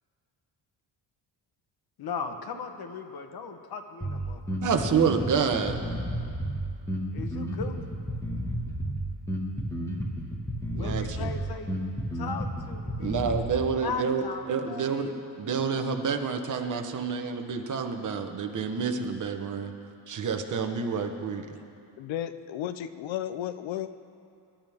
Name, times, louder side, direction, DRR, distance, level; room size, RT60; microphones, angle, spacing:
voice 1, 2.0-5.1 7.1-7.8 10.8-11.7 12.1-13.3 13.8-15.1 20.6-20.7, left 5 dB, 55° left, 6 dB, 1.2 m, -38 dB
Bass guitar, 4.0-13.6, equal, 5° left, 1.7 m, -32 dB
voice 2, 4.6-5.8 10.7-11.3 13.0-14.2 14.5-19.7 20.1-21.5, right 6 dB, 40° right, 4 dB, 1.2 m, -28 dB
voice 3, 22.0-23.9, left 11 dB, 85° left, 12 dB, 0.8 m, -33 dB
25.0 x 11.5 x 3.6 m, 2.5 s
cardioid pair, 155°, 45 cm